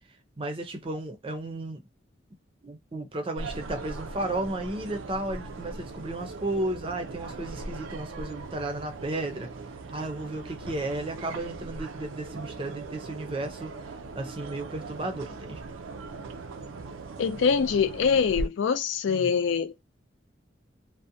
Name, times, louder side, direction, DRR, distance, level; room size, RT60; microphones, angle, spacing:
voice 1, 0.4-1.8 2.6-9.5 9.9-13.7 14.1-15.6 19.1-19.3, right 2 dB, 25° right, 0.5 m, -34 dB
sound 1, 3.4-18.5, right 3 dB, 85° right, 0.4 m, -39 dB
voice 2, 17.2-19.7, left 6 dB, 70° left, 0.3 m, -24 dB
2.6 x 2.1 x 2.5 m
head